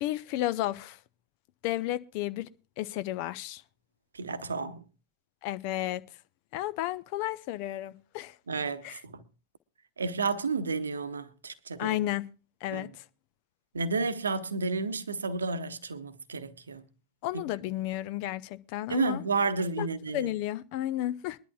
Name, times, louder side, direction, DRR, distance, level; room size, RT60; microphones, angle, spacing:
voice 1, 0.0-1.0 1.6-2.5 2.8-3.6 5.4-6.0 6.5-8.3 8.8-9.0 11.8-12.3 12.6-12.9 17.2-19.2 19.8-21.4, left 14 dB, 45° left, 0.5 m, -32 dB
voice 2, 4.1-4.8 8.5-9.2 10.0-12.0 12.7-12.9 13.7-16.8 17.3-17.4 18.9-20.3, right 4 dB, 70° right, 0.8 m, -31 dB
22.5 x 11.0 x 2.3 m
figure-of-eight pair, 90°, 0 cm